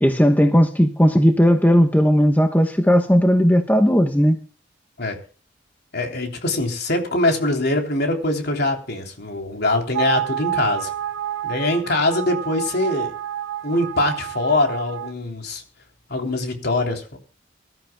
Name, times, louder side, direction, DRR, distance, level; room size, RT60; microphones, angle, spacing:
voice 1, 0.0-4.4, equal, 10° left, 1.1 m, -16 dB
voice 2, 5.9-10.9 11.4-13.1 13.6-15.6 16.1-17.2, left 2 dB, 55° left, 3.4 m, -23 dB
sound 1, 9.9-15.1, right 11 dB, 80° right, 0.6 m, -29 dB
24.0 x 13.0 x 2.3 m
head